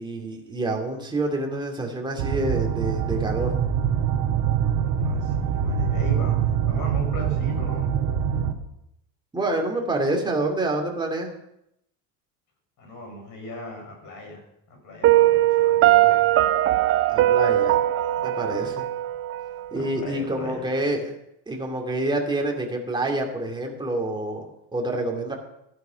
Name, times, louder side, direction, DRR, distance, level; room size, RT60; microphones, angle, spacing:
voice 1, 0.0-3.5 9.3-11.3 17.1-17.8 18.2-18.8 19.7-21.1 21.5-25.3, right 2 dB, 10° right, 0 dB, 2.7 m, -27 dB
sound 1, 2.2-8.5, right 8 dB, 60° right, 1.7 m, -24 dB
voice 2, 4.8-7.9 12.8-14.4 14.7-16.2 18.1-18.7 19.7-20.7, left 2 dB, 50° left, 2 dB, 5.7 m, -38 dB
Piano, 15.0-20.0, right 14 dB, 35° right, 0.4 m, -20 dB
14.0 x 11.0 x 5.2 m, 0.80 s
cardioid pair, 135°, 41 cm